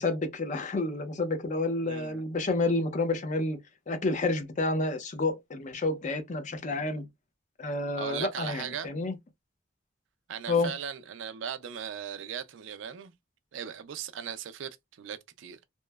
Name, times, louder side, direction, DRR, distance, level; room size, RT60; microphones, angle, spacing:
voice 1, 0.0-3.6 3.9-7.1 7.6-9.2 10.5-10.7, left 2 dB, 40° left, 0.5 m, -29 dB
voice 2, 1.8-2.2 8.0-8.9 10.3-13.1 13.5-15.6, right 7 dB, 75° right, 0.4 m, -38 dB
2.9 x 2.0 x 2.2 m
head